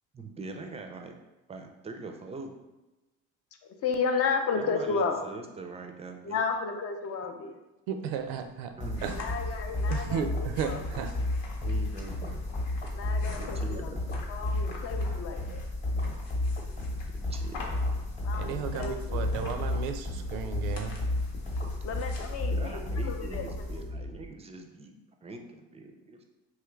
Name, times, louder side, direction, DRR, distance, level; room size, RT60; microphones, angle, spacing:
voice 1, 0.1-1.1 1.5-2.5 4.5-6.4 8.8-9.2 11.6-12.4 13.4-14.0 17.3-17.6 17.8-18.0 22.5-24.9 25.2-26.2, right 3 dB, 20° right, 4 dB, 0.4 m, -42 dB
voice 2, 3.6-5.3 6.2-7.6 9.1-10.8 12.9-13.9 14.3-15.6 18.2-19.3 21.8-23.9, left 5 dB, 45° left, 4 dB, 0.5 m, -33 dB
voice 3, 7.9-8.7 9.0-9.1 9.9-11.1 18.4-21.0, right 7 dB, 75° right, 7 dB, 0.5 m, -34 dB
sound 1, 8.2-23.5, left 3 dB, 70° left, 0.8 m, -46 dB
sound 2, 8.8-24.3, left 2 dB, 20° left, 0.9 m, -32 dB
3.0 x 2.4 x 3.1 m, 1.0 s
supercardioid pair, 75°, 36 cm